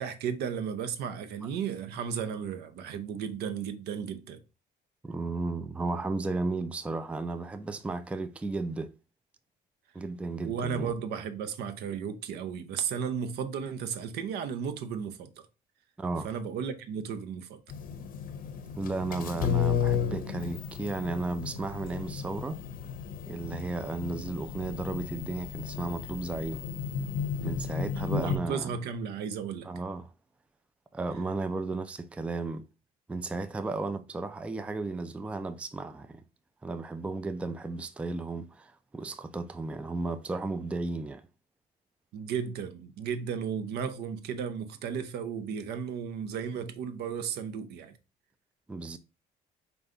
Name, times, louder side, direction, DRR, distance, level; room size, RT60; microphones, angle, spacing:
voice 1, 0.0-4.4 10.4-15.3 16.2-17.6 28.1-29.7 42.1-47.9, right 7 dB, 75° right, 0.6 m, -34 dB
voice 2, 5.0-8.9 9.9-10.9 16.0-16.3 18.8-22.6 23.3-26.7 27.4-28.7 29.7-30.1 30.9-32.6 33.1-36.2 36.6-41.2 48.7-49.0, right 3 dB, 5° right, 0.3 m, -34 dB
sound 1, 17.7-28.4, left 8 dB, 55° left, 0.6 m, -33 dB
5.1 x 2.3 x 3.7 m
cardioid pair, 110°, 17 cm